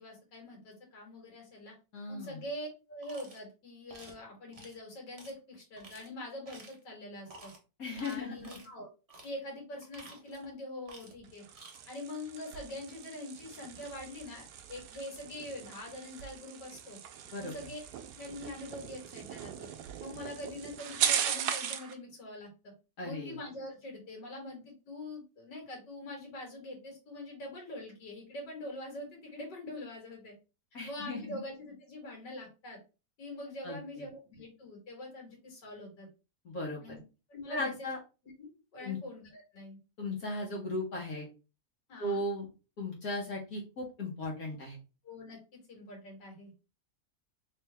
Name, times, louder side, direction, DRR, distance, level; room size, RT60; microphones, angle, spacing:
voice 1, 0.0-1.7 2.1-7.5 8.0-8.9 9.2-11.4 11.9-17.0 17.4-17.8 18.1-19.7 20.0-22.7 23.0-30.3 30.8-32.8 33.2-36.1 36.8-37.0 37.3-37.9 38.4-39.8 41.9-42.2 45.0-46.5, left 1 dB, 90° left, 0 dB, 2.2 m, -44 dB
voice 2, 1.9-2.4 7.8-8.5 17.3-17.5 23.0-23.4 30.7-31.4 33.6-34.0 36.4-37.0 37.5-38.0 38.8-39.0 40.0-41.3 42.0-42.5 42.8-44.8, left 2 dB, 60° left, -2 dB, 1.5 m, -37 dB
sound 1, 3.0-3.4 3.9-4.2 4.5-4.8 5.2-5.3 5.8-6.1 6.4-6.8 7.3-7.6 7.9-8.7 9.1-9.3 9.8-10.5 10.8-11.2 11.5-11.8, right 2 dB, 35° right, 0.6 m, -52 dB
sound 2, 11.2-21.9, right 8 dB, 75° right, 1.1 m, -38 dB
3.4 x 3.2 x 3.3 m, 0.31 s
omnidirectional pair, 1.8 m